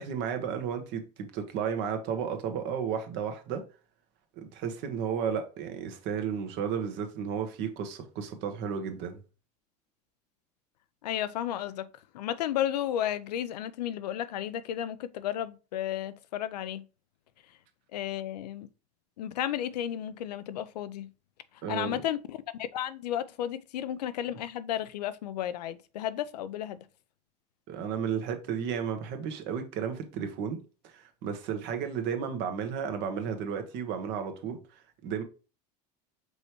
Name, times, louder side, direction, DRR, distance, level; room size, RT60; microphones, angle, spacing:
voice 1, 0.0-3.6 4.4-9.2 21.6-22.0 27.7-35.2, right 7 dB, 60° right, 1.2 m, -33 dB
voice 2, 11.0-11.9 12.1-16.8 17.9-18.7 19.2-21.1 21.7-26.8, left 11 dB, 85° left, 0.5 m, -33 dB
5.3 x 3.2 x 3.0 m
hypercardioid pair, 85°, 20 cm